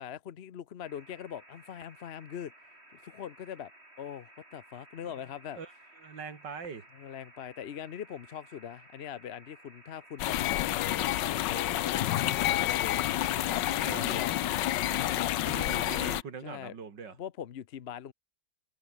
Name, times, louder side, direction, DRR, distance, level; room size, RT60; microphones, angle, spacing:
voice 1, 0.0-2.5 3.0-3.7 4.0-5.6 6.9-14.3 14.8-15.3 16.4-16.8 17.2-18.1, left 9 dB, 50° left, 0.8 m, -42 dB
sound 1, 0.8-15.2, right 1 dB, 35° right, 8.1 m, -56 dB
voice 2, 6.0-6.9 13.8-14.2 15.5-17.2, right 5 dB, 85° right, 3.0 m, -42 dB
sound 2, 10.2-16.2, left 14 dB, 85° left, 1.4 m, -29 dB
omnidirectional pair, 1.9 m